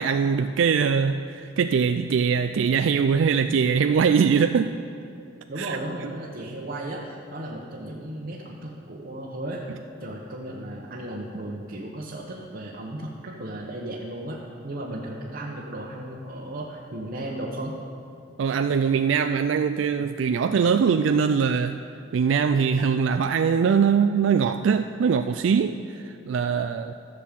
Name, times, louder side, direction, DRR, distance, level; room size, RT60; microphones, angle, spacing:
voice 1, 0.0-4.8 5.6-5.8 18.4-21.8 22.1-26.9, right 6 dB, 75° right, 0.3 m, -22 dB
voice 2, 5.5-17.7, right 1 dB, 50° right, 1.1 m, -35 dB
14.0 x 6.5 x 7.4 m
head